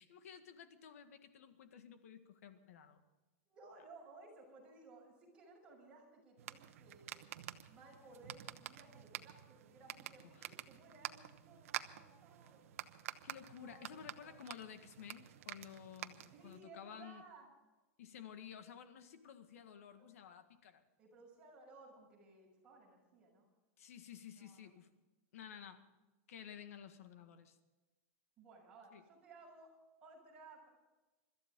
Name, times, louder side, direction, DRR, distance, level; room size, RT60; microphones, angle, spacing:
voice 1, 0.0-3.0 10.2-10.5 13.2-17.2 18.0-20.8 23.8-24.9 25.3-25.9 26.3-27.6 28.9-29.0, left 8 dB, 90° left, 8 dB, 1.8 m, -53 dB
voice 2, 3.5-7.2 7.7-12.7 13.5-14.5 16.2-17.5 21.0-23.5 24.3-24.7 28.4-29.8 30.0-30.7, right 3 dB, 10° right, -4 dB, 6.3 m, -59 dB
sound 1, 6.4-16.6, right 12 dB, 85° right, 1.0 m, -49 dB
25.0 x 14.0 x 3.8 m, 1.1 s
supercardioid pair, 180°, 8 cm